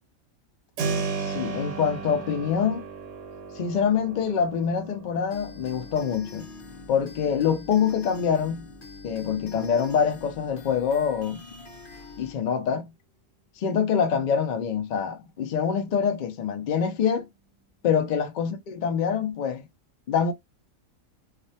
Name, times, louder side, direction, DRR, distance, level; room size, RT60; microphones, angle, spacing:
Keyboard (musical), 0.8-11.5, right 5 dB, 70° right, 1.0 m, -37 dB
voice 1, 1.2-2.9 3.5-6.4 6.9-8.7 9.0-11.4 12.2-12.9 13.6-17.3 17.8-19.6 20.1-20.3, left 7 dB, 85° left, 0.4 m, -25 dB
sound 1, 5.3-12.3, left 4 dB, 45° left, 0.8 m, -44 dB
2.5 x 2.1 x 2.7 m
omnidirectional pair, 1.5 m